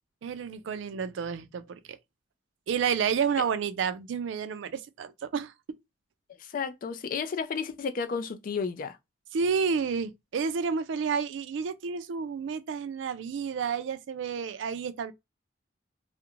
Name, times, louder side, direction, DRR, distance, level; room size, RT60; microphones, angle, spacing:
voice 1, 0.2-2.0 2.7-5.5 9.3-15.1, right 6 dB, 80° right, 0.4 m, -30 dB
voice 2, 6.4-9.0, left 5 dB, 50° left, 0.3 m, -32 dB
2.4 x 2.1 x 2.9 m
head